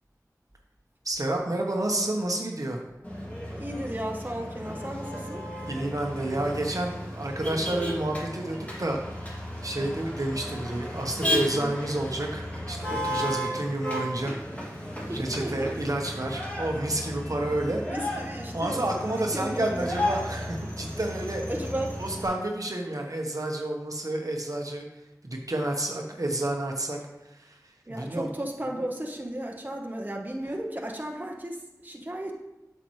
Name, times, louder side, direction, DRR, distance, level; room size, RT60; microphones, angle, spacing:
voice 1, 1.0-2.8 5.7-9.0 9.6-14.3 15.1-17.8 18.5-21.4 22.0-24.8 25.2-27.0 27.3-27.6 27.9-28.3, right 1 dB, 60° right, 1 dB, 1.0 m, -30 dB
Motor vehicle (road), 3.0-22.3, equal, 20° left, 2.5 m, -34 dB
voice 2, 3.5-5.4 15.1-15.7 17.8-18.8 19.1-19.9 21.5-21.9 27.9-32.3, right 1 dB, 25° right, 0 dB, 1.0 m, -34 dB
8.5 x 6.8 x 3.2 m, 0.96 s
wide cardioid pair, 50°, 7 cm